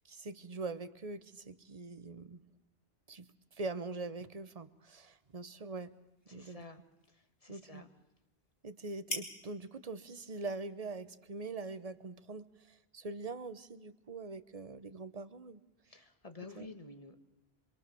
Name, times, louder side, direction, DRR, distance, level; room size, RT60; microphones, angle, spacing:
voice 1, 0.1-2.4 3.1-6.0 6.3-6.6 7.5-7.8 8.6-15.6 16.6-16.7, right 3 dB, 35° right, 12 dB, 1.1 m, -43 dB
sound 1, 4.8-12.5, left 1 dB, 65° left, 4.0 m, -50 dB
voice 2, 6.3-7.9 15.9-17.2, left 3 dB, 35° left, 8 dB, 1.8 m, -51 dB
26.5 x 24.5 x 7.0 m, 1.0 s
omnidirectional pair, 1.1 m